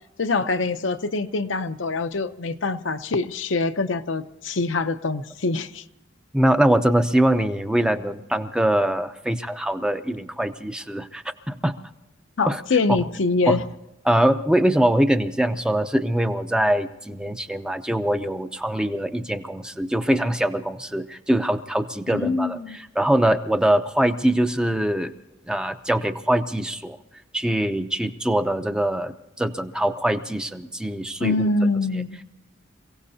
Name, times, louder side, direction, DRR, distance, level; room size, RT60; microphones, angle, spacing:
voice 1, 0.2-5.8 12.4-13.6 22.1-22.8 31.2-32.2, left 3 dB, 70° left, 9 dB, 0.7 m, -24 dB
voice 2, 6.3-11.8 12.5-12.6 13.5-13.6 14.1-25.1 25.5-27.0 27.3-31.5, right 1 dB, 5° right, 8 dB, 0.6 m, -23 dB
28.0 x 17.0 x 2.8 m, 0.96 s
head